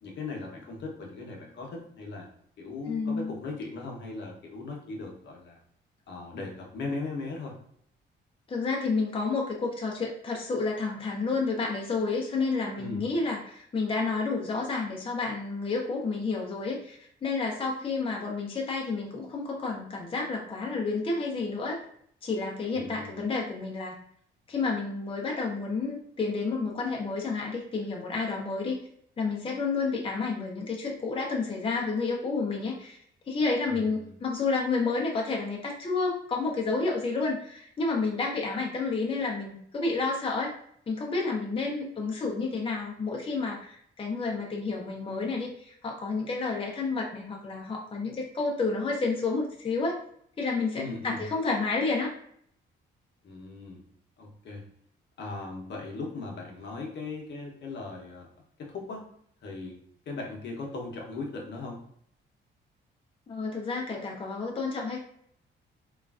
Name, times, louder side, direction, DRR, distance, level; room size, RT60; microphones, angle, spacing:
voice 1, 0.0-2.3 2.6-5.6 6.1-7.6 12.8-13.1 22.7-23.2 33.7-34.1 50.7-51.2 53.2-53.8 54.2-54.6 55.2-58.3 58.6-59.1 59.4-59.8 60.1-61.8, left 3 dB, 60° left, -1 dB, 0.8 m, -38 dB
voice 2, 2.9-3.3 8.5-21.8 22.2-24.0 24.5-28.8 29.2-33.0 33.3-40.5 40.9-50.0 50.4-52.1 63.3-65.0, left 4 dB, 25° left, 0 dB, 0.5 m, -30 dB
3.1 x 2.4 x 2.3 m, 0.66 s
cardioid pair, 90°, 20 cm